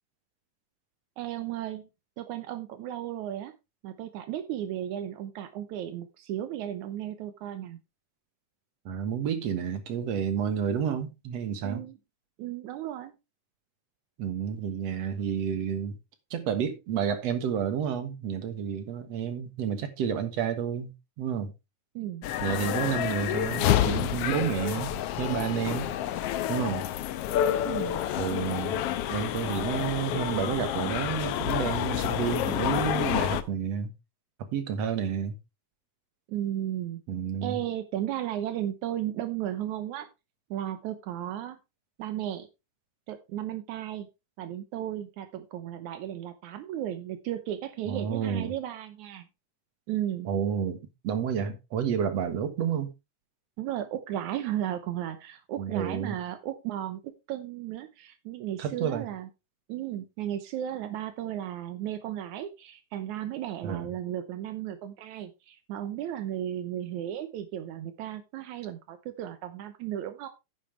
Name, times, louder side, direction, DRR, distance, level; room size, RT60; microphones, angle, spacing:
voice 1, 1.2-1.9 2.2-3.5 3.8-7.8 11.6-12.0 12.4-13.1 22.0-22.3 27.6-28.0 36.3-37.0 37.4-40.1 40.5-41.6 42.0-42.5 43.1-44.1 44.4-49.3 49.9-50.3 53.6-59.3 59.7-70.3, right 11 dB, 80° right, 2.3 m, -35 dB
voice 2, 8.9-11.8 14.2-16.0 16.3-21.5 22.4-25.9 26.5-26.9 28.2-28.8 29.1-33.9 34.4-35.4 37.1-37.6 47.9-48.5 50.3-52.9 55.6-56.2 58.6-59.1 63.6-63.9, right 8 dB, 65° right, 2.4 m, -30 dB
sound 1, 22.2-33.4, left 11 dB, 75° left, 1.5 m, -29 dB
10.0 x 8.9 x 3.3 m
omnidirectional pair, 3.4 m